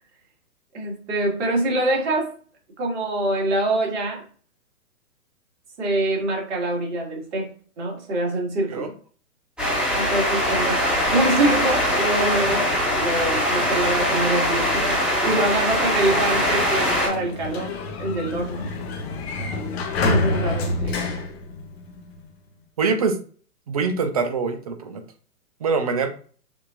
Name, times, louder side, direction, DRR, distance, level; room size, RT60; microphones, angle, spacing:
voice 1, 0.7-2.3 2.8-4.2 5.8-7.5 7.8-8.9 9.9-10.8 11.1-17.7 18.0-18.7 20.0-21.2, right 2 dB, 45° right, -2 dB, 2.3 m, -25 dB
sound 1, 9.6-17.1, equal, ahead, 1.4 m, -22 dB
Sliding door, 16.6-22.2, left 2 dB, 40° left, 0.9 m, -27 dB
voice 2, 22.8-23.2 23.7-25.0 25.6-26.1, right 4 dB, 25° right, 7 dB, 0.5 m, -23 dB
6.9 x 2.7 x 2.6 m, 0.42 s
figure-of-eight pair, 130°, 47 cm